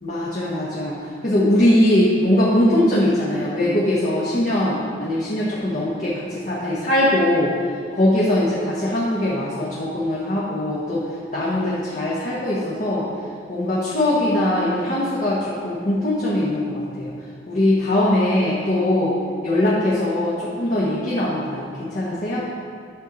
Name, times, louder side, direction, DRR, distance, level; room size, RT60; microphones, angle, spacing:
voice 1, 0.0-7.5 7.9-11.0 11.3-13.1 13.5-17.1 17.5-19.1 19.4-22.5, left 1 dB, 45° left, -7 dB, 1.3 m, -21 dB
9.5 x 6.5 x 4.0 m, 2.3 s
head